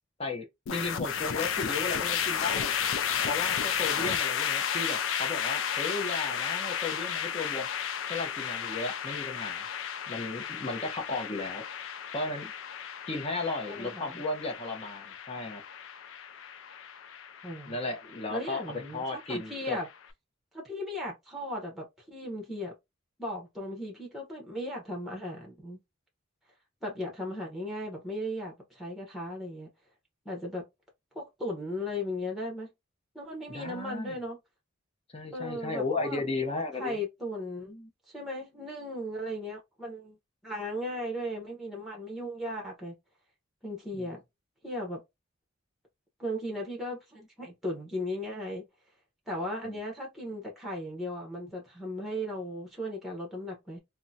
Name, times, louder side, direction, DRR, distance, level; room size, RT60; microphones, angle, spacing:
sound 1, 0.7-19.9, left 8 dB, 70° left, 0.4 m, -33 dB
voice 1, 0.7-2.7 3.3-7.7 8.1-9.7 10.1-11.6 12.1-12.5 13.1-15.6 17.7-19.8 33.5-34.2 35.1-37.0 43.9-44.1 49.6-49.8, left 3 dB, 30° left, 0.7 m, -35 dB
voice 2, 13.7-14.2 17.4-17.8 18.3-19.9 20.5-22.7 23.2-25.8 26.8-29.7 30.2-30.7 31.1-32.7 33.1-34.4 35.3-36.2 36.8-40.2 40.4-43.0 43.6-44.2 44.6-45.0 46.2-48.6 49.3-53.8, left 1 dB, ahead, 0.8 m, -36 dB
3.6 x 2.1 x 2.7 m
head